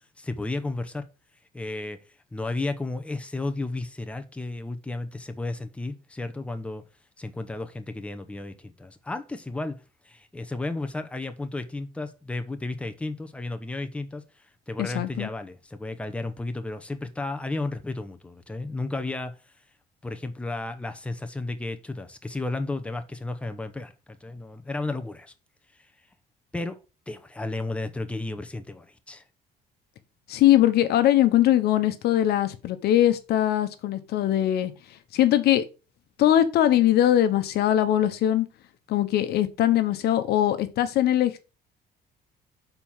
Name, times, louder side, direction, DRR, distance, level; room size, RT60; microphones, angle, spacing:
voice 1, 0.2-1.0 1.5-2.0 2.3-6.8 7.2-14.2 14.7-19.4 20.0-25.3 26.5-26.8 27.1-29.2, left 2 dB, 5° left, 0.9 m, -33 dB
voice 2, 14.8-15.3 30.3-34.7 35.1-35.6 36.2-38.5 38.9-41.4, left 12 dB, 70° left, 1.0 m, -21 dB
6.9 x 4.4 x 5.6 m
cardioid pair, 110°, 17 cm